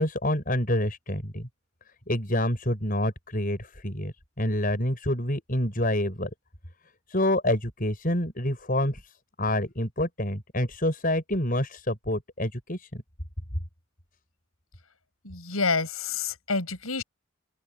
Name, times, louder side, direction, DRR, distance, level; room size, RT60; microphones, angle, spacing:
voice 1, 0.0-1.5 2.1-6.3 7.1-13.0, left 1 dB, 40° left, 8.0 m, -27 dB
voice 2, 15.2-17.0, left 4 dB, 85° left, 8.0 m, -28 dB
open air
head